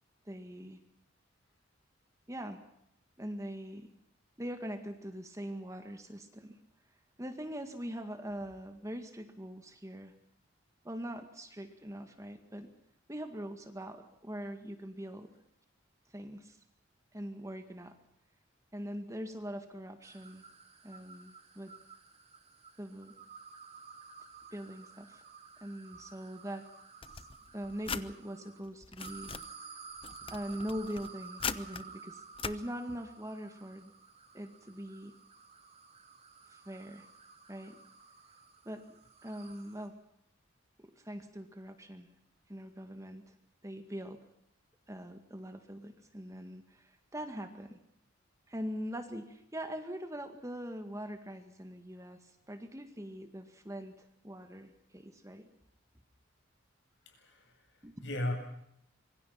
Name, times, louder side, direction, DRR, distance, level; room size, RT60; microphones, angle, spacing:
voice 1, 0.3-0.8 2.3-2.6 3.2-3.9 4.4-6.6 7.2-10.1 10.8-12.7 13.1-15.3 16.1-16.6 17.1-18.0 18.7-20.4 20.8-21.7 22.8-23.1 24.5-25.2 25.6-26.7 27.5-29.3 30.3-33.9 34.3-35.1 36.5-37.1 37.5-37.8 38.7-38.8 39.2-40.0 40.8-42.1 42.5-43.3 43.6-44.2 44.9-47.8 48.5-55.5 57.8-58.0, equal, 15° right, 6 dB, 2.0 m, -42 dB
sound 1, 20.0-28.6 29.0-39.9, right 5 dB, 30° right, 3.2 m, -53 dB
sound 2, 27.0-28.1 28.7-29.5 30.0-31.8 32.4-32.6, left 6 dB, 25° left, 0.9 m, -40 dB
voice 2, 57.0-58.3, left 1 dB, 60° left, 4 dB, 7.8 m, -37 dB
26.0 x 23.5 x 5.8 m, 0.76 s
head